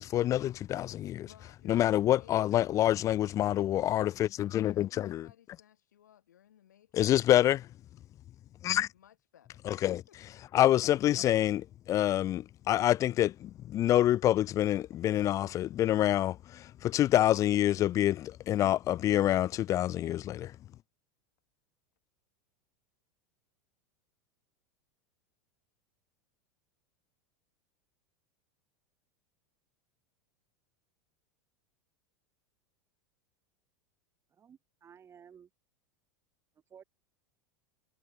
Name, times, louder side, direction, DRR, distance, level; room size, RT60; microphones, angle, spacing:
voice 1, 0.0-1.3 1.7-5.3 6.9-7.7 8.6-8.9 9.7-10.0 10.5-20.5, left 13 dB, 35° left, 0.5 m, -27 dB
voice 2, 1.2-2.6 5.0-7.1 8.9-9.6 10.1-10.2, left 10 dB, 75° left, 6.8 m, -60 dB
voice 3, 34.4-35.5 36.7-36.8, right 7 dB, 30° right, 6.0 m, -54 dB
hypercardioid pair, 85°, 10 cm